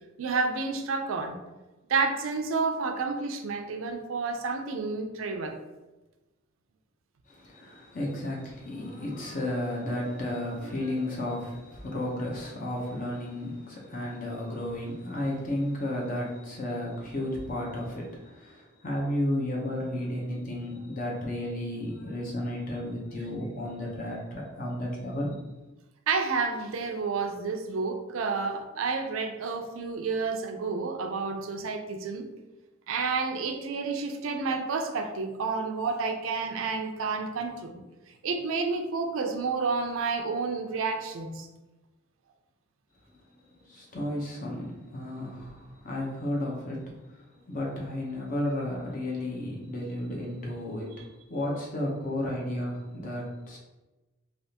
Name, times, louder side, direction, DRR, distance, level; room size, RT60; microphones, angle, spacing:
voice 1, 0.2-1.4 1.9-5.6 26.1-32.2 32.9-37.8 38.2-41.5, right 4 dB, 70° right, 5 dB, 0.4 m, -30 dB
voice 2, 7.3-25.3 43.7-46.8 47.5-50.9 51.3-53.6, left 1 dB, 40° left, -2 dB, 0.7 m, -33 dB
3.3 x 2.4 x 2.8 m, 1.1 s
head